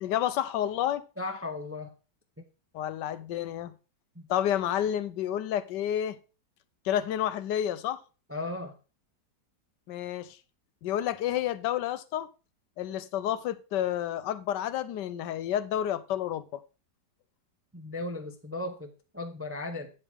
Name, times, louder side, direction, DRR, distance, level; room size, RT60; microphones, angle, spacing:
voice 1, 0.0-1.0 2.7-3.7 4.3-6.2 6.8-8.0 9.9-10.4 10.8-12.3 12.8-16.6, left 11 dB, 90° left, 1.3 m, -30 dB
voice 2, 1.2-1.9 2.4-2.5 4.2-4.3 8.3-8.7 17.7-19.9, left 2 dB, 15° right, 0.4 m, -36 dB
9.1 x 7.7 x 3.6 m
omnidirectional pair, 1.8 m